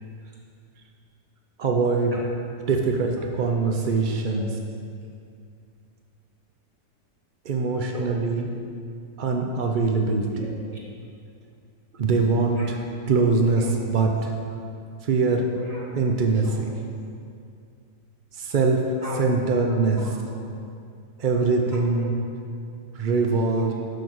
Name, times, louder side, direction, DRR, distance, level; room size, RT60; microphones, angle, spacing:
voice 1, 1.6-2.1 2.7-4.5 7.4-8.5 9.2-10.5 12.0-12.6 13.1-14.3 15.0-15.5 15.9-16.5 18.4-18.8 19.2-20.0 21.2-22.1 22.9-23.7, right 4 dB, 85° right, 2 dB, 0.4 m, -22 dB
voice 2, 10.4-10.8 12.6-12.7 13.0-13.1 13.6-13.7 14.5-14.6 15.6-16.0 16.4-16.9 19.0-19.3 19.8-20.5 21.7-22.1 23.5-23.7, right 1 dB, 20° right, -6 dB, 1.9 m, -40 dB
11.5 x 4.1 x 6.2 m, 2.4 s
omnidirectional pair, 1.8 m